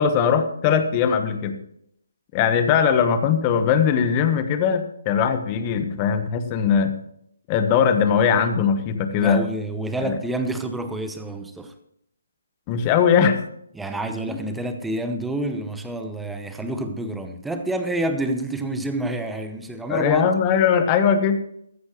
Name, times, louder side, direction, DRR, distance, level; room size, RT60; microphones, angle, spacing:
voice 1, 0.0-1.6 2.3-6.9 7.5-9.4 10.0-10.1 12.7-13.4 14.3-14.4 19.9-21.4, left 7 dB, 25° left, 1.2 m, -20 dB
voice 2, 9.1-11.7 13.7-20.3, right 1 dB, 5° right, 0.9 m, -28 dB
15.0 x 13.0 x 3.1 m
hypercardioid pair, 160°, 0 cm